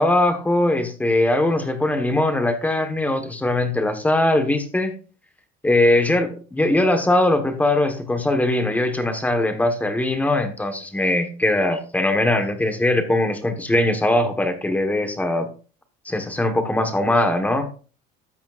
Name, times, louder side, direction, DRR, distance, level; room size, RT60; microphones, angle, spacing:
voice 1, 0.0-4.9 5.6-15.5 16.0-17.7, left 1 dB, 10° left, 7 dB, 1.3 m, -21 dB
13.0 x 8.7 x 2.5 m, 0.37 s
cardioid pair, 155°, 20 cm